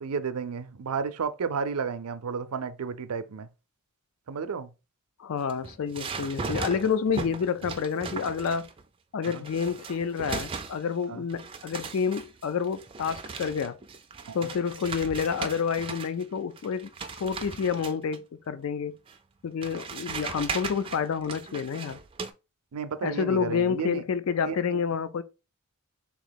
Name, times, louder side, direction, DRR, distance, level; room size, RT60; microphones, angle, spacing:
voice 1, 0.0-3.5 4.3-4.7 9.3-9.4 11.1-11.3 14.3-14.5 22.7-24.0 24.4-24.8, right 5 dB, 85° right, 0.5 m, -32 dB
voice 2, 5.2-8.7 9.1-13.8 14.3-16.9 17.2-19.0 19.4-22.0 23.0-25.2, left 6 dB, 65° left, 0.4 m, -29 dB
sound 1, 5.4-8.8 9.2-11.0 11.3-16.2 16.6-18.2 19.1-19.2 19.6-22.3, right 4 dB, 25° right, 0.3 m, -38 dB
3.6 x 2.9 x 3.9 m
head